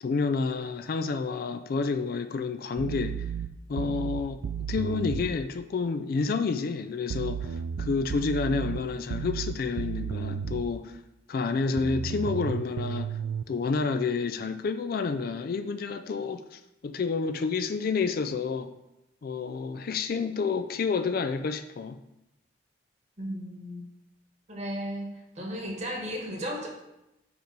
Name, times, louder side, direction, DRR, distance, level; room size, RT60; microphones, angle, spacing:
voice 1, 0.0-3.3 3.7-4.4 4.7-11.0 11.3-13.2 13.5-18.7 19.2-22.0, left 4 dB, 50° left, 9 dB, 0.3 m, -29 dB
sound 1, 2.8-5.4 7.1-10.7 11.8-13.4, right 7 dB, 80° right, 0.3 m, -33 dB
voice 2, 23.2-23.8 24.5-25.1 25.3-26.7, equal, 35° right, 0 dB, 1.3 m, -34 dB
5.1 x 5.0 x 4.6 m, 0.90 s
head